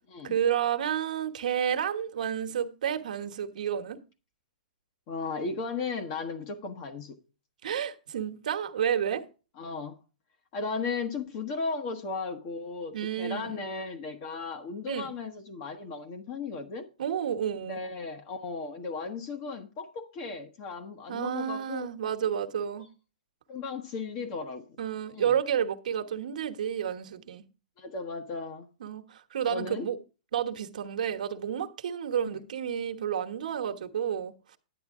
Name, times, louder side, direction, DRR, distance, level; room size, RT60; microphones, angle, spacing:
voice 1, 0.2-4.0 7.6-9.2 12.9-13.5 14.9-15.1 17.0-17.8 21.1-22.9 24.8-27.4 28.8-30.0 30.3-34.6, right 9 dB, 65° right, 1.2 m, -30 dB
voice 2, 5.1-7.2 9.6-10.0 10.5-16.9 17.6-21.9 23.5-24.7 25.1-25.4 27.8-28.7 29.5-29.9 32.3-32.4, left 4 dB, 35° left, 1.2 m, -36 dB
10.0 x 8.8 x 3.6 m
hypercardioid pair, 160°, 4 cm